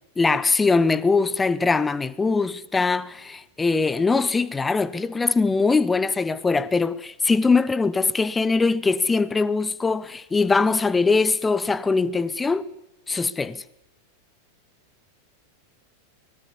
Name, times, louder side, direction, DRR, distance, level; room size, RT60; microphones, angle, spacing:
voice 1, 0.2-12.7 13.1-13.6, left 4 dB, 10° left, 0.9 m, -22 dB
24.0 x 18.0 x 7.2 m
figure-of-eight pair, 90°, 0 cm